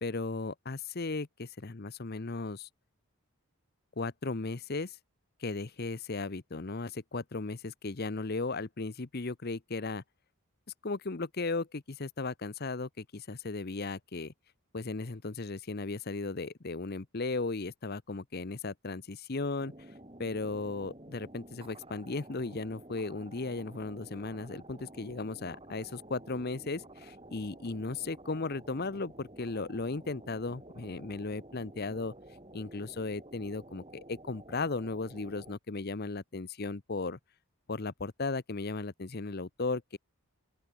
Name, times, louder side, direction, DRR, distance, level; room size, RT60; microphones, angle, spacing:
voice 1, 0.0-2.7 4.0-5.0 5.4-10.0 10.8-14.3 14.7-19.7 20.2-32.1 32.5-37.2 37.7-40.0, left 3 dB, 45° left, 0.8 m, -36 dB
sound 1, 19.6-35.6, right 1 dB, 25° right, 5.9 m, -52 dB
open air
head